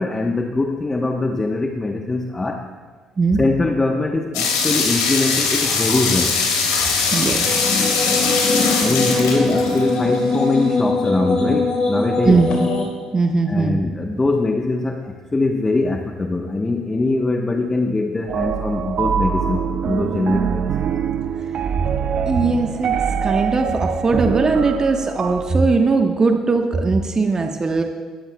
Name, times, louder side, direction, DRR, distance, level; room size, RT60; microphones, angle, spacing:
voice 1, 0.0-2.6 3.4-6.4 8.8-12.5 13.5-20.9, left 2 dB, 20° left, 3 dB, 1.1 m, -22 dB
sound 1, 4.3-10.2, left 4 dB, 75° left, 3.0 m, -21 dB
voice 2, 7.1-7.6 12.2-12.5 13.1-13.8 22.3-27.8, right 3 dB, 30° right, 4 dB, 1.1 m, -19 dB
sound 2, 7.3-12.8, left 3 dB, 50° left, 4.0 m, -21 dB
sound 3, 18.3-25.5, right 7 dB, 50° right, 0.5 m, -23 dB
19.5 x 14.0 x 2.3 m, 1.5 s
figure-of-eight pair, 50°, 2 cm